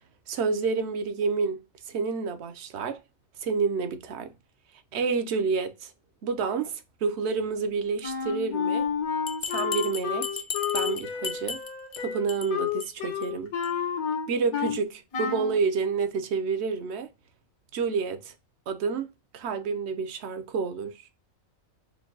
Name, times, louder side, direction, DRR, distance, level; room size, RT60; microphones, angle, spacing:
voice 1, 0.3-1.6 1.9-3.0 3.4-4.3 4.9-5.9 6.2-8.9 9.5-10.4 10.7-11.6 12.0-13.5 14.3-17.1 17.7-18.3 18.7-19.1 19.3-21.0, right 5 dB, 60° right, 0.8 m, -29 dB
Wind instrument woodwind instrument, 8.0-14.8 15.1-15.6, left 7 dB, 85° left, 1.5 m, -30 dB
Bell, 9.3-12.0 12.3-12.5 12.8-12.9 13.2-13.3 13.6-13.7, left 6 dB, 50° left, 0.5 m, -34 dB
4.5 x 2.2 x 3.8 m
omnidirectional pair, 1.5 m